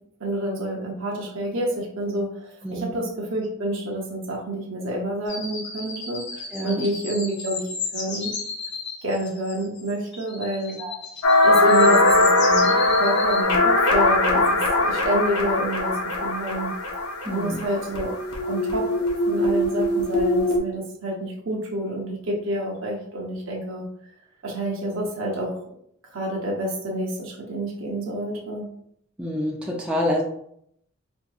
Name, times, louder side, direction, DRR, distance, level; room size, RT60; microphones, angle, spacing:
voice 1, 0.2-8.3 9.0-10.8 11.4-16.7 17.3-18.1 18.5-18.9 19.3-23.8 24.4-25.5 26.1-28.7, right 1 dB, 60° right, -1 dB, 0.8 m, -28 dB
voice 2, 2.6-3.0 6.5-6.9 10.8-11.0 17.2-17.6 29.2-30.2, left 1 dB, 5° right, -2 dB, 0.4 m, -27 dB
sound 1, 5.3-13.4, left 4 dB, 50° left, 0.7 m, -34 dB
sound 2, 11.2-20.6, left 2 dB, 90° left, 0.8 m, -21 dB
4.5 x 2.6 x 2.3 m, 0.71 s
head